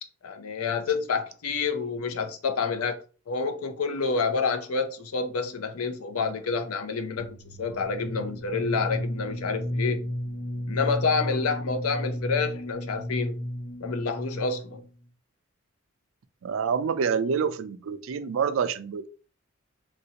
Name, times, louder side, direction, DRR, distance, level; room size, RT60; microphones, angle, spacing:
voice 1, 0.2-3.0 3.3-10.0 10.7-13.4 13.8-14.8, left 4 dB, 85° left, 0.5 m, -28 dB
sound 1, 7.2-14.8, equal, 35° left, 0.6 m, -33 dB
voice 2, 16.4-19.1, right 6 dB, 65° right, 0.3 m, -27 dB
3.2 x 2.6 x 2.7 m
head